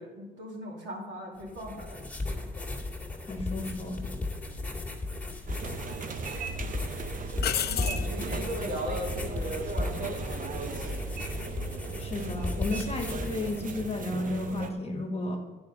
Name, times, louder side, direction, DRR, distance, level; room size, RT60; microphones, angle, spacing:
voice 1, 0.0-2.1 2.4-2.5 4.4-4.7 7.6-10.9, equal, 65° right, -3 dB, 2.6 m, -38 dB
sound 1, 1.4-14.1, left 2 dB, 5° left, 2.0 m, -35 dB
voice 2, 3.3-4.0 12.0-15.4, left 2 dB, 30° left, 3 dB, 1.3 m, -33 dB
sound 2, 4.0-4.2 5.3-6.0 6.4-6.5 7.4-8.1 11.2-11.6, left 10 dB, 55° left, 0.5 m, -32 dB
sound 3, 5.5-14.7, right 5 dB, 40° right, 0.7 m, -38 dB
9.5 x 5.2 x 5.3 m, 1.2 s
cardioid pair, 90°, 20 cm